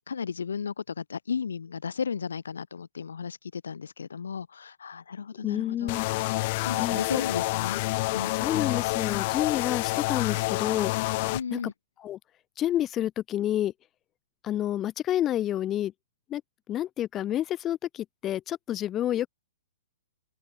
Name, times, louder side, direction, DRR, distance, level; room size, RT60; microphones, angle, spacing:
voice 1, 0.1-5.9 6.6-7.8 8.1-8.4 11.3-11.7, left 6 dB, 65° left, 3.1 m, -34 dB
voice 2, 5.4-6.1 6.8-7.0 8.3-10.9 11.5-11.6 12.0-12.2 12.6-13.7 14.4-15.9 16.3-16.4 16.7-19.3, left 12 dB, 20° left, 5.3 m, -29 dB
sound 1, 5.9-11.4, left 22 dB, 40° left, 5.2 m, -28 dB
open air
figure-of-eight pair, 115°, 0 cm